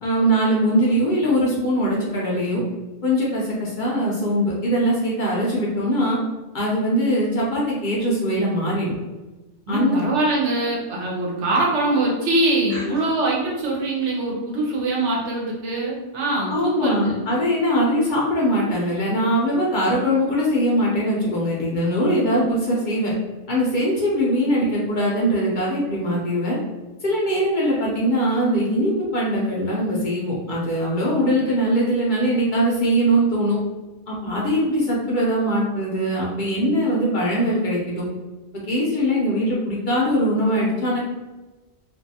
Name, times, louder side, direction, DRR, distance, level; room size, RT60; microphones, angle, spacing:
voice 1, 0.0-2.6 3.0-6.2 6.5-8.9 9.7-10.0 12.7-12.8 16.5-23.1 23.5-26.6 27.0-33.6 34.1-38.0 38.5-41.0, equal, 55° left, -4 dB, 0.7 m, -21 dB
voice 2, 9.7-17.2, right 2 dB, 80° right, -3 dB, 1.1 m, -23 dB
2.6 x 2.3 x 2.7 m, 1.1 s
omnidirectional pair, 1.2 m